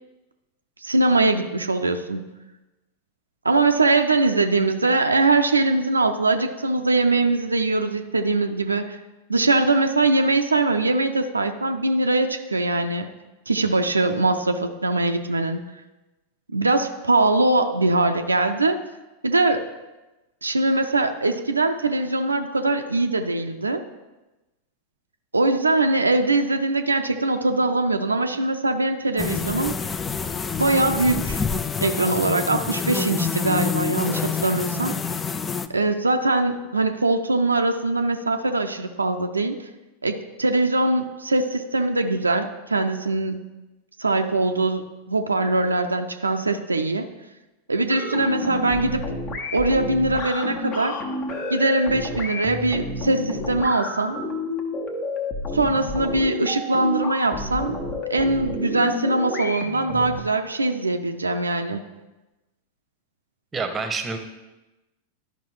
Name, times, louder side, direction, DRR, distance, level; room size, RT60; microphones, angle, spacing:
voice 1, 0.8-2.3 3.4-9.0 9.3-13.1 13.5-15.6 16.5-18.8 19.2-19.7 20.4-23.8 25.3-29.7 30.6-31.4 31.8-35.0 35.7-39.7 40.0-43.4 44.0-47.1 47.7-49.0 49.5-51.0 51.5-54.2 55.5-57.8 58.1-61.8, right 2 dB, 80° right, 6 dB, 0.5 m, -22 dB
sound 1, 29.2-35.7, left 5 dB, 20° left, 0.4 m, -27 dB
sound 2, 47.9-60.2, left 2 dB, 40° left, 1.2 m, -30 dB
voice 2, 63.5-64.2, right 4 dB, 15° right, 6 dB, 1.0 m, -27 dB
12.0 x 5.3 x 3.1 m, 1.1 s
figure-of-eight pair, 90°, 0 cm